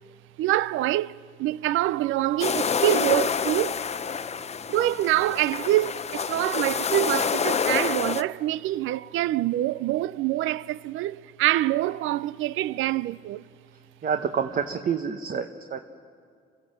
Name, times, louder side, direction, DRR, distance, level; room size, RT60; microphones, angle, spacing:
voice 1, 0.4-3.8 4.7-13.4, right 15 dB, 85° right, 0.5 m, -25 dB
sound 1, 2.4-8.2, left 6 dB, 35° left, 0.6 m, -27 dB
voice 2, 14.0-15.8, right 7 dB, 45° right, 1.0 m, -28 dB
28.5 x 15.0 x 7.7 m
cardioid pair, 90°, 20 cm